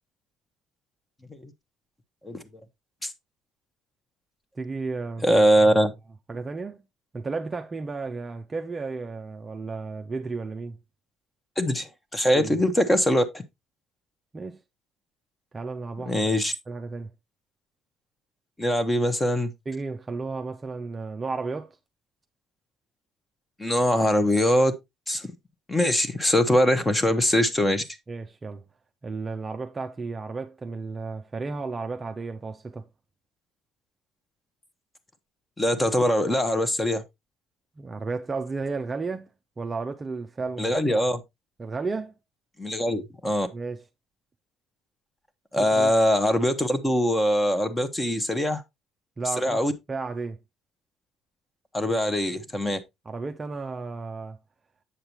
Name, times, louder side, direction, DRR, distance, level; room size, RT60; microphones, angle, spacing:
voice 1, 4.6-5.4 5.7-5.8 6.3-6.8 7.1-10.8 12.3-12.6 14.3-14.6 15.5-16.3 16.7-17.1 19.7-21.8 28.1-28.7 29.0-32.9 37.8-39.3 39.6-41.0 41.6-42.1 43.5-43.9 45.6-45.9 49.2-50.4 53.1-54.4, right 4 dB, 20° right, 0.5 m, -33 dB
voice 2, 5.2-5.9 11.6-13.4 16.1-16.5 18.6-19.5 23.6-24.7 25.1-25.2 25.7-27.8 35.6-37.0 40.6-41.2 42.6-43.5 45.5-48.6 49.4-49.7 51.7-52.8, equal, 10° left, 0.9 m, -22 dB
8.0 x 6.6 x 2.9 m
cardioid pair, 145°, 0 cm